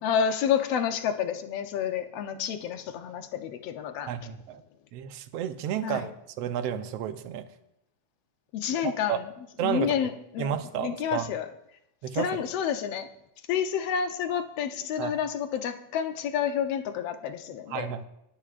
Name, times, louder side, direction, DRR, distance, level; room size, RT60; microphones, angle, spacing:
voice 1, 0.0-4.1 5.8-6.1 8.5-9.3 9.6-10.5 10.8-11.5 12.1-13.1 13.5-17.9, left 8 dB, 70° left, 7 dB, 1.6 m, -29 dB
voice 2, 4.1-4.6 4.9-7.5 8.8-9.2 9.6-9.9 10.4-11.3 12.0-12.4 15.0-15.1 17.7-18.1, right 9 dB, 70° right, 9 dB, 1.6 m, -31 dB
23.0 x 12.0 x 2.5 m, 0.82 s
omnidirectional pair, 3.5 m